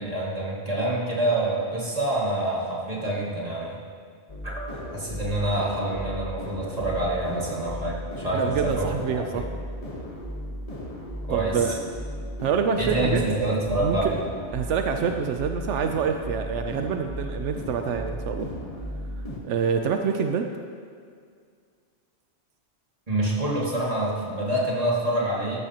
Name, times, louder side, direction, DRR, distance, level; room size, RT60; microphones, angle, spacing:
voice 1, 0.0-3.8 4.4-9.4 11.3-11.7 12.8-14.2 23.1-25.6, right 1 dB, 35° right, -5 dB, 2.1 m, -27 dB
sound 1, 4.3-19.4, equal, 30° left, 1.3 m, -35 dB
voice 2, 8.3-9.4 11.3-11.8 12.4-13.2 13.8-14.1 14.5-18.5 19.4-20.5, right 6 dB, 85° right, 5 dB, 0.9 m, -26 dB
13.5 x 12.0 x 2.9 m, 2.1 s
omnidirectional pair, 1.2 m